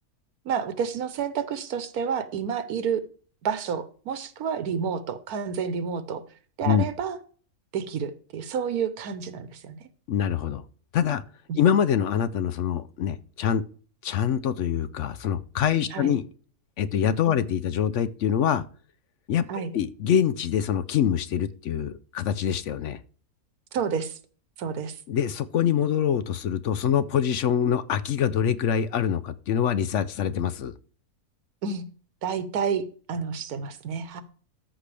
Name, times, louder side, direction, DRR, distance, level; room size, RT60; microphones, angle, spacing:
voice 1, 0.4-3.0 3.4-6.2 6.6-7.2 7.7-9.9 11.5-11.6 15.9-16.1 17.3-17.4 19.5-19.7 23.7-24.2 24.6-24.9 31.6-31.8 32.2-34.2, right 6 dB, 90° right, 11 dB, 1.4 m, -30 dB
voice 2, 10.1-10.6 10.9-11.2 11.6-13.6 14.0-16.3 16.8-18.6 19.3-23.0 25.1-30.7, left 8 dB, 65° left, 14 dB, 0.8 m, -25 dB
13.5 x 6.0 x 3.3 m, 0.41 s
omnidirectional pair, 1.5 m